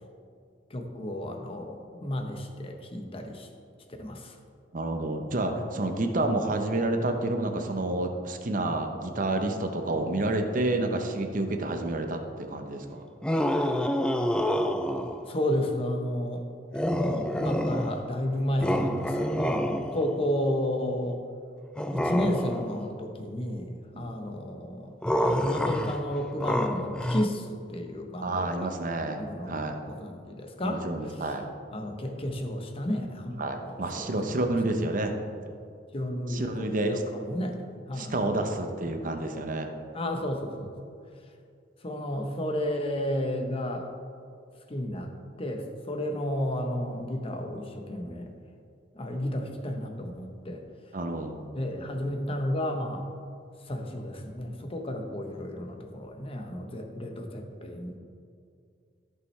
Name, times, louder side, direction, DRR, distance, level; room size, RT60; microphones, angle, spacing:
voice 1, 0.7-3.5 4.0-4.4 15.3-16.4 16.9-21.2 21.9-24.9 25.5-28.7 29.2-29.6 29.9-30.8 31.7-33.6 33.9-34.1 35.9-38.3 39.9-40.7 41.8-43.9 44.7-45.1 45.4-48.3 48.9-50.6 51.5-53.1 53.7-58.0, left 1 dB, 30° left, 4 dB, 0.9 m, -32 dB
voice 2, 4.7-13.0 23.9-24.1 28.2-29.8 30.6-31.5 33.4-35.1 36.3-37.0 38.0-39.7 50.9-51.4, right 2 dB, 50° right, 5 dB, 0.8 m, -29 dB
sound 1, 13.2-15.3 16.7-18.2 18.6-20.3 21.8-22.9 25.0-27.3, equal, 5° left, 0.3 m, -28 dB
14.0 x 5.7 x 3.2 m, 2.4 s
head